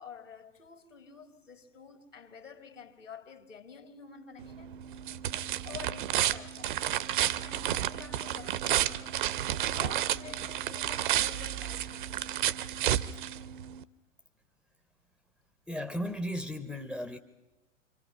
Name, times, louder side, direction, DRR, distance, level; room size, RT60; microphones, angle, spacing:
voice 1, 0.0-4.8 5.6-7.1 7.4-12.4, left 6 dB, 75° left, 2.4 m, -49 dB
sound 1, 4.4-13.8, right 12 dB, 40° right, 0.8 m, -31 dB
voice 2, 15.7-17.2, equal, ahead, 0.7 m, -35 dB
26.5 x 25.5 x 5.6 m
figure-of-eight pair, 105°, 38 cm